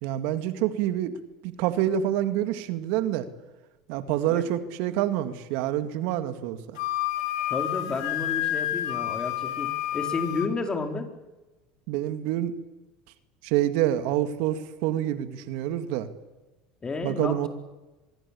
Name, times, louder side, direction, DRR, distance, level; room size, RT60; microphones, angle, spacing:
voice 1, 0.0-1.2 1.4-3.3 3.9-6.6 11.9-12.5 13.4-16.1 17.0-17.5, right 12 dB, 70° right, 10 dB, 2.1 m, -27 dB
Wind instrument woodwind instrument, 6.8-10.5, left 14 dB, 80° left, 3.1 m, -29 dB
voice 2, 7.5-11.1 16.8-17.5, left 3 dB, 25° left, 5 dB, 4.5 m, -31 dB
24.5 x 21.5 x 8.6 m, 1.1 s
supercardioid pair, 90°, 3 cm